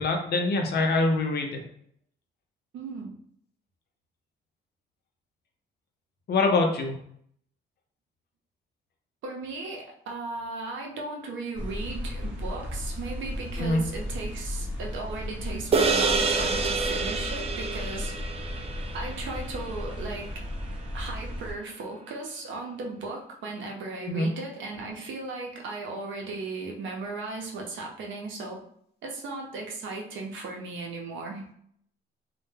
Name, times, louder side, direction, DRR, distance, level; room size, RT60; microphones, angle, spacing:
voice 1, 0.0-1.6 6.3-7.0 13.6-13.8 24.1-24.3, left 2 dB, 55° left, 3 dB, 0.6 m, -24 dB
voice 2, 2.7-3.2 9.2-18.1 18.9-20.3 20.9-28.6 29.0-31.5, right 3 dB, 75° right, 0 dB, 0.6 m, -36 dB
sound 1, 11.5-21.5, left 1 dB, 5° right, 0.8 m, -35 dB
sound 2, 15.7-20.3, right 4 dB, 30° right, 0.3 m, -28 dB
2.2 x 2.1 x 3.2 m, 0.67 s
cardioid pair, 90°, 20 cm